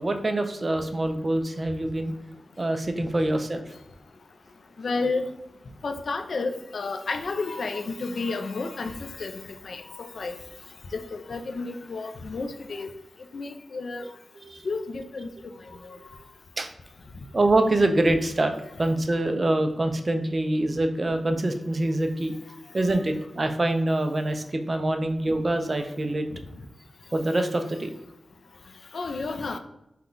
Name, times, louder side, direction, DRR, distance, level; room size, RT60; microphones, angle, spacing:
voice 1, 0.0-2.1 2.6-3.7 14.4-14.7 16.6-16.7 17.3-18.5 18.8-22.3 22.7-26.4 27.1-27.9, right 1 dB, 35° right, 6 dB, 0.5 m, -25 dB
voice 2, 4.8-5.3 5.8-10.3 10.9-12.9 13.3-14.0 14.6-15.3 28.9-29.6, left 3 dB, 65° left, 7 dB, 0.5 m, -31 dB
5.4 x 2.3 x 3.8 m, 0.87 s
wide cardioid pair, 105°, 0 cm